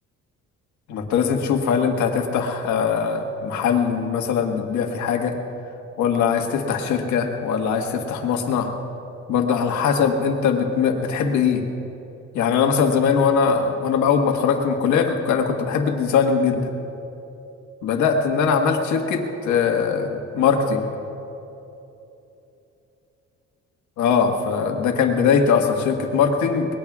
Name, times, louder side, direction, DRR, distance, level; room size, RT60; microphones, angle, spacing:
voice 1, 0.9-5.4 6.0-8.7 9.3-11.6 12.3-16.7 17.8-20.9 24.0-26.7, left 6 dB, 80° left, 3 dB, 1.7 m, -21 dB
23.5 x 19.5 x 2.4 m, 3.0 s
cardioid pair, 100°, 29 cm